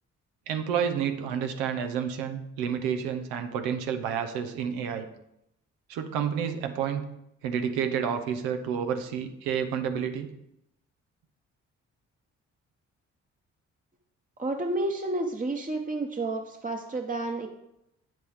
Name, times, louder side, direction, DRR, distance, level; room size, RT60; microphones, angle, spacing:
voice 1, 0.5-5.1 5.9-7.0 7.4-10.3, right 7 dB, 80° right, 7 dB, 0.8 m, -30 dB
voice 2, 14.4-17.5, right 2 dB, 20° right, 2 dB, 1.1 m, -30 dB
8.3 x 7.4 x 3.5 m, 0.82 s
hypercardioid pair, 40°, 36 cm